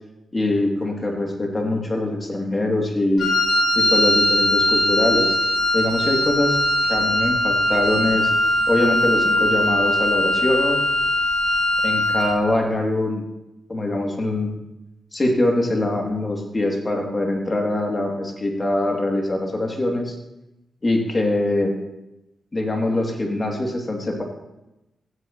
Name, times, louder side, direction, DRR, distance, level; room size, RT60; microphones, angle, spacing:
voice 1, 0.3-3.3 3.7-5.4 5.7-6.6 6.8-8.3 8.7-10.8 11.8-13.2 13.7-14.5 15.1-20.1 20.8-21.7 22.5-24.2, left 1 dB, 35° left, 1 dB, 2.6 m, -23 dB
Wind instrument woodwind instrument, 3.2-12.4, left 1 dB, 75° left, 2.3 m, -20 dB
15.5 x 8.1 x 3.0 m, 0.93 s
cardioid pair, 50°, 0 cm